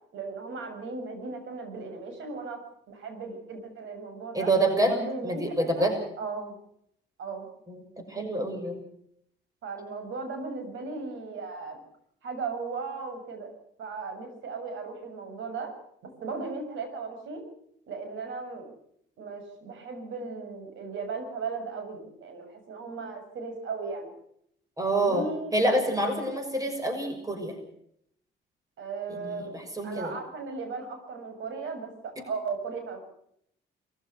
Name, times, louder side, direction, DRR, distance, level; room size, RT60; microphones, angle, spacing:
voice 1, 0.1-4.5 4.8-6.6 7.2-7.5 9.6-11.8 12.2-13.5 13.8-15.7 16.0-17.4 17.9-18.7 19.2-24.1 25.0-25.6 26.0-26.3 28.8-29.6 29.8-33.0, right 4 dB, 75° right, 6 dB, 6.6 m, -36 dB
voice 2, 4.3-5.0 5.2-6.0 7.7-8.8 24.8-25.3 25.5-27.6 29.1-30.1, right 1 dB, 15° right, 5 dB, 6.4 m, -27 dB
22.5 x 15.0 x 8.1 m, 0.70 s
cardioid pair, 90°, 20 cm